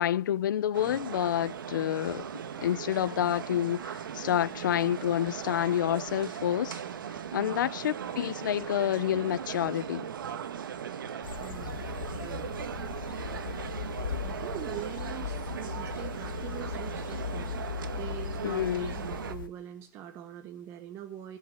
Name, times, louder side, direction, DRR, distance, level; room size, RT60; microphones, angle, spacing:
voice 1, 0.0-2.3 2.6-6.8 7.3-10.1 18.4-18.9, left 11 dB, 65° left, 0.5 m, -28 dB
sound 1, 0.7-19.4, right 8 dB, 75° right, 1.3 m, -38 dB
sound 2, 11.2-19.5, left 8 dB, 85° left, 1.2 m, -38 dB
voice 2, 11.4-12.6 14.2-17.6 18.0-21.4, right 11 dB, 20° right, 0.9 m, -43 dB
15.5 x 5.8 x 7.5 m
hypercardioid pair, 160°, 11 cm